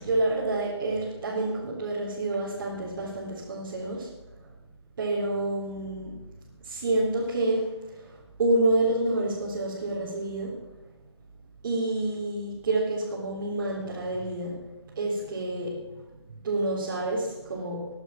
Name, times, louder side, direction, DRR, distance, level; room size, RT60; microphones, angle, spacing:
voice 1, 0.0-4.1 4.4-4.5 5.0-6.2 6.6-10.6 11.6-14.6 14.9-15.8 16.3-17.9, right 2 dB, 45° right, -6 dB, 3.9 m, -28 dB
18.0 x 11.0 x 5.8 m, 1.1 s
figure-of-eight pair, 155°, 15 cm